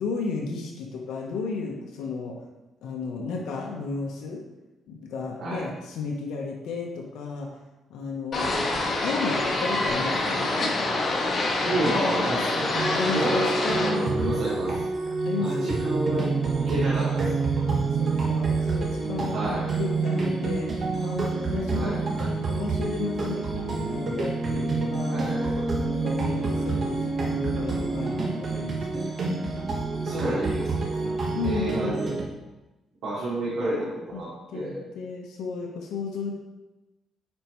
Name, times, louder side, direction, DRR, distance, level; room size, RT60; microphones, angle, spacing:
voice 1, 0.0-2.3 2.8-4.4 4.9-7.5 7.9-8.5 9.0-10.5 12.9-14.4 15.2-15.8 17.6-19.4 19.8-25.3 25.8-29.1 30.1-30.3 31.3-32.2 34.1-36.3, left 4 dB, 85° left, -1 dB, 1.0 m, -33 dB
sound 1, 8.3-13.9, left 2 dB, 50° left, 1.6 m, -26 dB
voice 2, 11.6-12.7 13.1-13.4 13.7-14.7 15.4-16.3 16.6-17.5 19.3-19.7 21.7-22.0 25.1-26.1 30.0-31.1 31.4-32.2 33.0-34.8, right 1 dB, 75° right, -10 dB, 2.4 m, -30 dB
sound 2, 12.7-32.2, right 3 dB, 45° right, 1.2 m, -27 dB
8.8 x 4.5 x 3.1 m, 1.0 s
cardioid pair, 90°, 0 cm